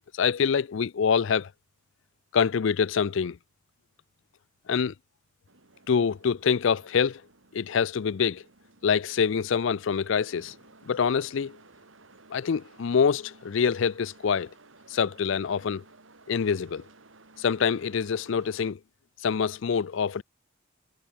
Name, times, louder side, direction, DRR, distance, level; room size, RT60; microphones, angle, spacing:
voice 1, 0.1-1.5 2.3-3.4 4.7-4.9 5.9-7.2 7.5-8.4 8.8-10.5 10.8-11.6 12.3-14.5 14.9-15.8 16.3-16.8 17.4-18.8 19.2-20.2, left 6 dB, 60° left, 0.4 m, -25 dB
sound 1, 5.5-18.7, right 3 dB, 65° right, 2.5 m, -56 dB
head